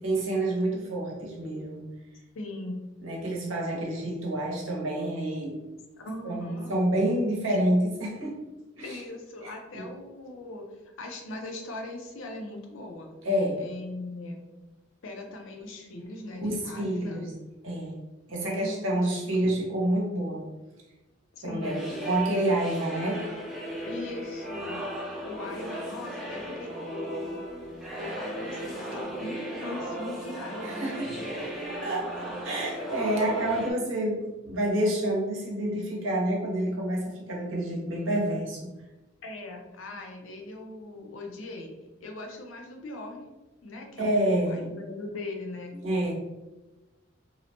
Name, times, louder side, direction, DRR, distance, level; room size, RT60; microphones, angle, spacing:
voice 1, 0.0-1.8 3.0-5.6 6.2-8.4 8.8-9.0 9.4-9.9 13.2-13.6 16.4-17.3 17.6-18.0 18.3-20.5 21.4-23.2 30.6-31.1 31.8-32.1 32.4-38.7 44.0-44.6 45.8-46.1, right 1 dB, 75° right, -2 dB, 0.8 m, -28 dB
voice 2, 2.3-2.8 6.0-6.7 7.5-7.6 8.8-10.7 11.0-13.1 13.6-14.4 15.0-17.2 18.3-19.3 21.3-21.8 23.9-24.9 25.2-27.4 28.0-31.5 32.8-32.9 39.2-41.7 42.0-43.3 43.6-45.8, left 2 dB, 80° left, 2 dB, 0.5 m, -40 dB
sound 1, 21.6-33.7, equal, ahead, 0.4 m, -36 dB
2.7 x 2.1 x 2.8 m, 1.1 s
head